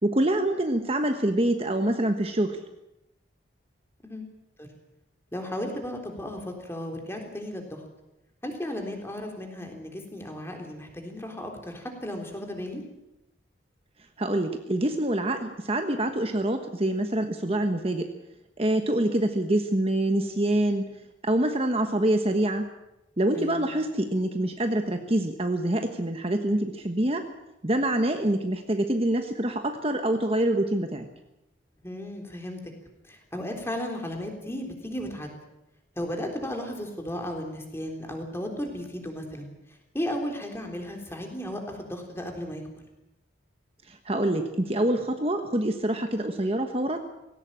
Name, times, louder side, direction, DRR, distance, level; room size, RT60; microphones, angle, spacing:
voice 1, 0.0-2.6 14.2-18.1 18.6-20.9 21.2-22.7 23.2-27.3 27.6-31.1 43.9-47.0, right 1 dB, 30° right, 6 dB, 1.3 m, -26 dB
voice 2, 5.3-7.8 8.4-12.8 23.3-23.7 31.8-32.6 33.0-35.3 36.0-39.5 39.9-42.6, left 1 dB, 15° left, 2 dB, 3.6 m, -35 dB
18.5 x 17.5 x 8.7 m, 0.91 s
head